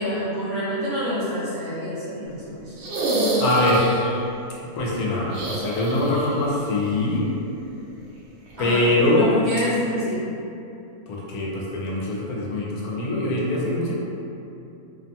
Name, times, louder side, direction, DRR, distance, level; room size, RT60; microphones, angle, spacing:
voice 1, 0.0-2.7 8.6-8.8 9.2-10.2, equal, 45° right, -12 dB, 0.9 m, -27 dB
sound 1, 2.8-4.2 5.3-6.5 6.7-6.8 8.5-8.6, right 1 dB, 70° right, 0.6 m, -26 dB
voice 2, 3.4-4.0 4.7-7.3 8.6-9.3 11.1-13.9, left 1 dB, 80° left, -4 dB, 1.1 m, -23 dB
2.7 x 2.2 x 2.6 m, 2.7 s
omnidirectional pair, 1.6 m